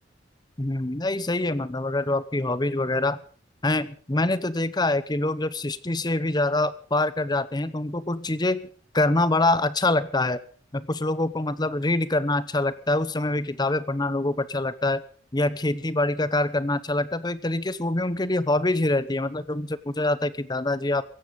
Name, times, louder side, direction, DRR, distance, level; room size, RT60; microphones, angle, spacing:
voice 1, 0.6-3.2 3.6-8.7 8.9-10.4 10.7-15.0 15.3-21.0, left 2 dB, 20° left, 16 dB, 0.9 m, -25 dB
17.0 x 15.0 x 5.3 m, 0.43 s
head